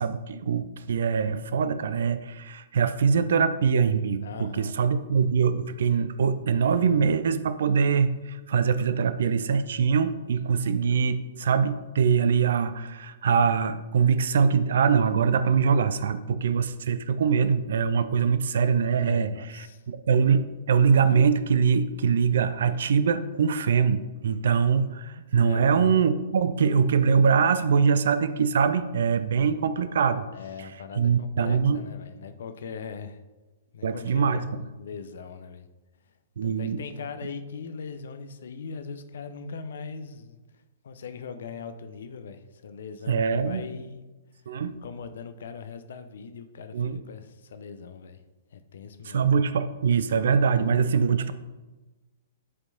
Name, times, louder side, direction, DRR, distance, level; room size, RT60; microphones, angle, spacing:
voice 1, 0.0-30.3 30.6-30.7 31.0-31.8 33.8-34.6 36.4-36.8 43.1-43.7 44.5-44.8 46.7-47.0 49.0-51.3, right 6 dB, 60° right, 13 dB, 0.4 m, -23 dB
voice 2, 4.2-4.7 18.9-19.8 25.4-25.7 30.3-33.2 33.7-35.7 36.4-40.4 40.8-44.0 44.8-48.2 48.5-49.3, left 5 dB, 60° left, 10 dB, 0.6 m, -40 dB
11.0 x 4.5 x 2.7 m, 1.2 s
figure-of-eight pair, 110°, 0 cm